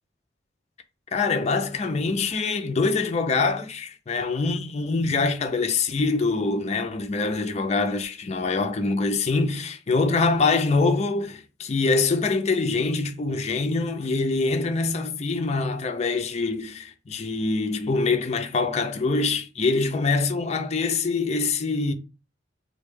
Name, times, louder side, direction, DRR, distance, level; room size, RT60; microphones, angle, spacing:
voice 1, 1.1-21.9, left 3 dB, 35° left, 0.4 m, -24 dB
3.3 x 2.2 x 3.6 m
head